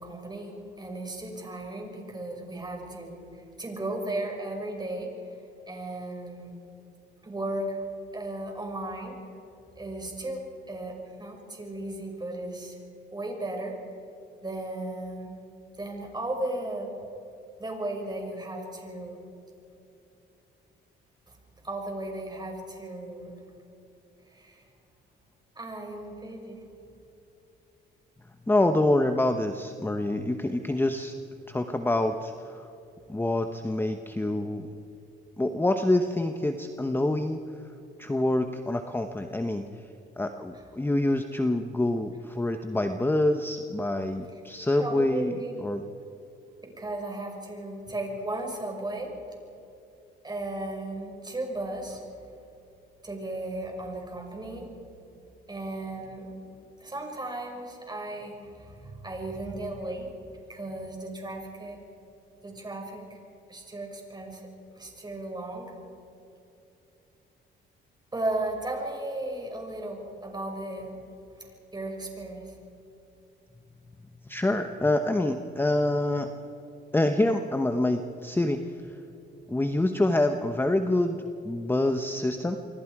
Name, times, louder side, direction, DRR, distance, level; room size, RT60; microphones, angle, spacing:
voice 1, 0.0-5.2 5.7-6.5 7.2-7.8 8.1-9.2 9.8-12.8 13.1-13.8 14.4-15.4 15.8-17.0 17.6-19.2 21.6-23.4 24.3-24.6 25.6-26.6 44.8-45.7 46.8-49.2 50.2-52.0 53.0-54.7 55.5-56.5 56.8-60.1 60.5-61.8 62.4-63.2 63.5-64.5 64.7-65.7 68.1-71.0 71.4-72.6, right 2 dB, 20° right, 1 dB, 6.0 m, -35 dB
voice 2, 28.5-31.1 31.5-32.7 33.1-34.7 35.4-37.4 38.0-39.9 40.2-45.8 74.3-76.3 76.9-79.0 79.5-82.6, left 1 dB, 10° left, 7 dB, 1.0 m, -26 dB
27.5 x 23.5 x 4.9 m, 2.8 s
cardioid pair, 90°, 20 cm